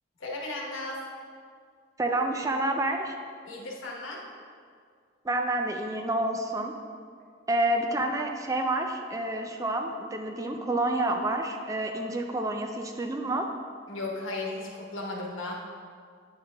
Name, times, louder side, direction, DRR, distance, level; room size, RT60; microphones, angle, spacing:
voice 1, 0.2-1.0 3.4-4.2 13.9-15.6, left 2 dB, 85° left, -1 dB, 1.2 m, -35 dB
voice 2, 2.0-3.2 5.2-6.7 7.5-13.5, right 1 dB, 15° right, 4 dB, 0.4 m, -28 dB
8.6 x 5.6 x 3.4 m, 2.1 s
head